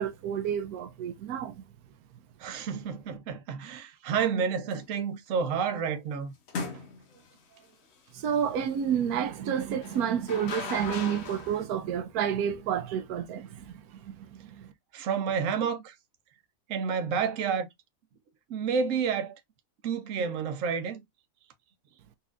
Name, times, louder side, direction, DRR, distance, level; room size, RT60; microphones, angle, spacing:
voice 1, 0.0-1.6 8.1-14.7, right 8 dB, 90° right, 1.1 m, -30 dB
voice 2, 2.4-6.3 14.9-15.9 16.7-17.7 18.5-19.4 19.8-21.0, right 6 dB, 65° right, 1.0 m, -29 dB
sound 1, 4.7-5.0 6.5-7.3 9.8-11.6, left 4 dB, 55° left, 0.8 m, -37 dB
4.1 x 3.0 x 2.4 m
omnidirectional pair, 1.5 m